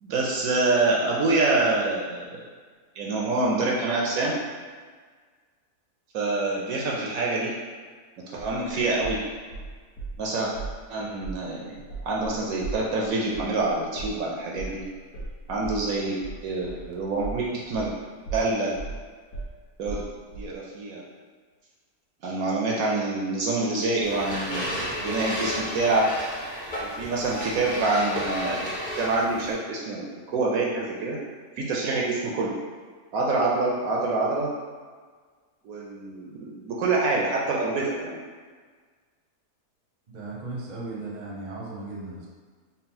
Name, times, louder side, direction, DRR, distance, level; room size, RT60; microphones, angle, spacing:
voice 1, 0.0-2.4 3.0-4.4 6.1-7.5 8.3-9.2 10.2-10.5 10.9-11.8 12.0-14.8 15.5-17.9 18.3-18.7 19.8-20.0 20.4-21.0 22.2-26.1 27.0-31.2 31.6-32.5 33.1-34.5 35.6-38.2, right 3 dB, 70° right, -3 dB, 1.0 m, -26 dB
sound 1, 8.4-10.2 10.5-10.8 11.2-11.4 11.7-18.0 18.2-20.5, right 3 dB, 60° left, 1.3 m, -37 dB
sound 2, 24.0-29.5, equal, 30° left, 0.8 m, -32 dB
voice 2, 40.1-42.3, right 2 dB, 40° right, -3 dB, 0.6 m, -36 dB
4.1 x 2.0 x 4.1 m, 1.5 s
omnidirectional pair, 1.7 m